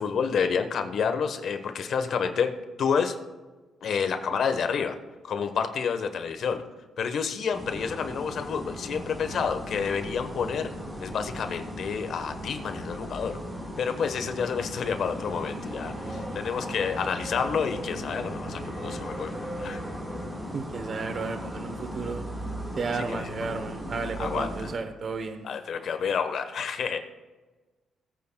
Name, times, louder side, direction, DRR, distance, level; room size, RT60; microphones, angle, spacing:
voice 1, 0.0-2.5 2.8-3.1 3.8-5.0 5.2-6.6 7.0-10.7 11.0-13.4 13.8-19.8 23.2-23.3 24.2-24.5 25.4-27.0, left 6 dB, 60° left, 8 dB, 1.1 m, -29 dB
sound 1, 7.5-24.7, equal, 20° right, 4.0 m, -37 dB
voice 2, 20.5-22.2 22.8-25.5, right 4 dB, 45° right, 7 dB, 0.8 m, -33 dB
20.5 x 8.8 x 2.3 m, 1.3 s
cardioid pair, 90°, 0 cm